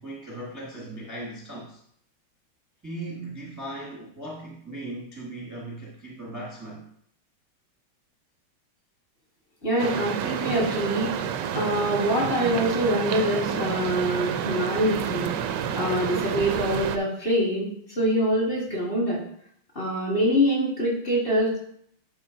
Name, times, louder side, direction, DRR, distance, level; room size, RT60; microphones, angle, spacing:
voice 1, 0.0-1.8 2.8-6.8, right 1 dB, 10° right, -4 dB, 1.0 m, -38 dB
voice 2, 9.6-11.1 11.5-15.3 15.7-17.7 18.0-19.2 19.8-21.6, equal, 25° left, -5 dB, 2.1 m, -24 dB
sound 1, 9.8-17.0, right 8 dB, 75° right, 1.0 m, -29 dB
10.5 x 3.8 x 3.9 m, 0.66 s
omnidirectional pair, 2.2 m